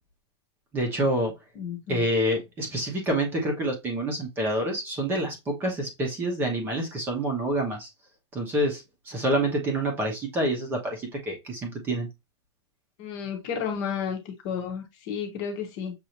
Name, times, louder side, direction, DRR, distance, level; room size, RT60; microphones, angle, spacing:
voice 1, 0.7-1.3 1.9-7.9 8.3-12.1, right 1 dB, 15° right, 1.0 m, -27 dB
voice 2, 1.6-2.0 13.0-15.9, left 7 dB, 30° left, 1.1 m, -32 dB
6.5 x 2.7 x 2.8 m
supercardioid pair, 175°, 15 cm